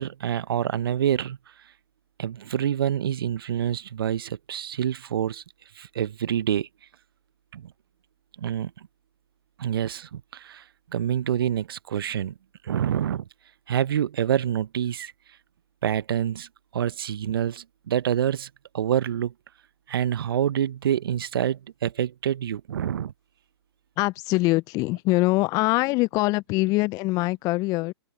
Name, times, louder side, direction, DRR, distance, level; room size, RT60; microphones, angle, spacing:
voice 1, 0.0-1.4 2.2-5.4 5.7-6.7 7.5-7.7 8.4-8.7 9.6-10.6 10.9-12.3 12.6-13.3 13.7-15.1 15.8-19.3 19.9-23.1, right 10 dB, 55° right, 1.0 m, -27 dB
voice 2, 24.0-27.9, left 22 dB, 25° left, 1.0 m, -23 dB
open air
figure-of-eight pair, 125°, 15 cm